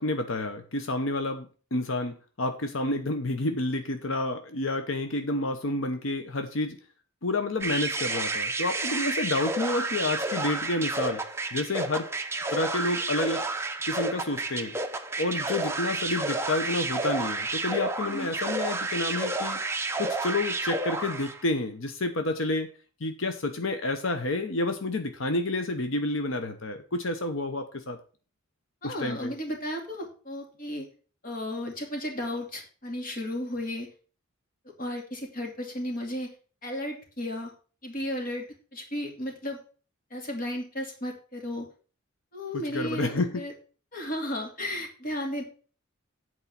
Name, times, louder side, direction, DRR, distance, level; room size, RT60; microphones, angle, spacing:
voice 1, 0.0-6.8 7.2-11.2 11.5-12.1 12.5-13.4 13.9-14.7 15.2-19.6 20.0-22.7 23.0-28.0 28.8-29.3 42.5-43.4, left 2 dB, 65° left, 7 dB, 0.9 m, -29 dB
sound 1, 7.6-21.4, right 2 dB, 15° right, 0.7 m, -31 dB
voice 2, 28.8-30.9 31.2-33.9 34.8-36.3 36.6-37.5 37.8-38.4 38.7-39.6 40.1-41.7 42.3-43.5 43.9-45.4, left 1 dB, 45° left, 1 dB, 2.6 m, -34 dB
8.5 x 4.7 x 6.9 m, 0.38 s
head